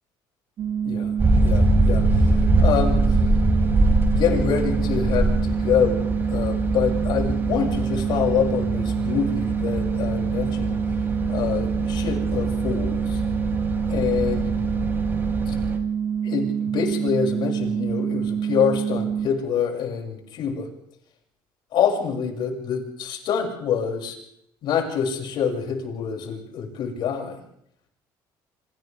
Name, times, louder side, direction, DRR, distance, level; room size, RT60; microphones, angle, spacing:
sound 1, 0.6-19.3, right 8 dB, 45° right, 1.6 m, -26 dB
sound 2, 1.2-15.8, right 1 dB, 25° right, 4.1 m, -24 dB
voice 1, 1.4-2.3 2.6-3.0 4.1-6.0 6.3-10.8 11.3-13.2 13.9-14.5 15.5-15.6 16.2-20.7 21.7-24.2 24.6-27.4, left 7 dB, 65° left, 1 dB, 6.8 m, -26 dB
28.5 x 26.0 x 3.5 m, 0.71 s
cardioid pair, 110°, 8 cm